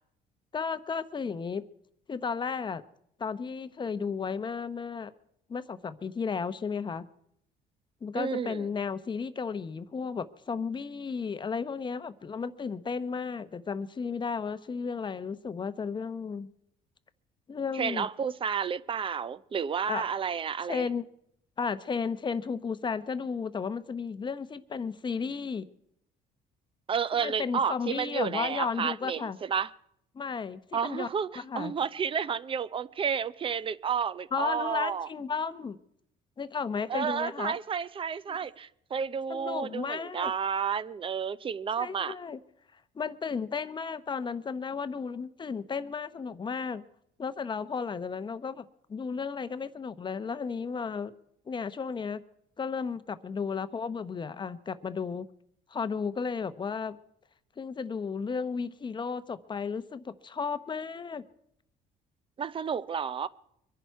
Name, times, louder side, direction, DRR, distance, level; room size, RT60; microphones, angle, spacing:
voice 1, 0.5-1.6 2.1-2.8 3.2-5.1 5.5-7.1 8.0-16.5 17.5-18.1 19.9-20.1 20.7-21.1 21.6-25.7 27.1-29.4 30.1-31.1 31.4-31.7 34.3-35.8 36.4-37.6 38.3-38.4 39.3-40.3 41.8-42.4 42.9-46.8 47.2-48.6 48.9-51.1 51.5-52.2 52.6-55.3 55.7-57.0 57.6-61.2, left 5 dB, 25° left, 0.8 m, -34 dB
voice 2, 8.1-8.7 17.7-20.9 26.9-29.7 30.7-35.1 36.9-42.1 62.4-63.3, right 7 dB, 30° right, 0.6 m, -31 dB
24.0 x 10.5 x 4.6 m
cardioid pair, 110°, 17 cm